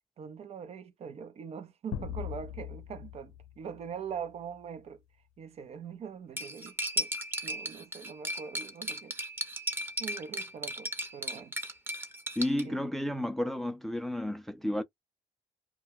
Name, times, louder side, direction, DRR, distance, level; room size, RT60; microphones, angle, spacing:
voice 1, 0.2-5.0 5.4-7.1 7.4-9.2 10.0-11.5 12.6-12.8, right 7 dB, 50° right, 0.6 m, -42 dB
sound 1, 1.9-4.5, left 10 dB, 80° left, 0.6 m, -40 dB
Cutlery silverware, 6.4-12.6, right 1 dB, 15° right, 0.8 m, -36 dB
voice 2, 12.4-14.8, left 1 dB, ahead, 0.4 m, -32 dB
2.2 x 2.2 x 3.4 m
supercardioid pair, 75°, 14 cm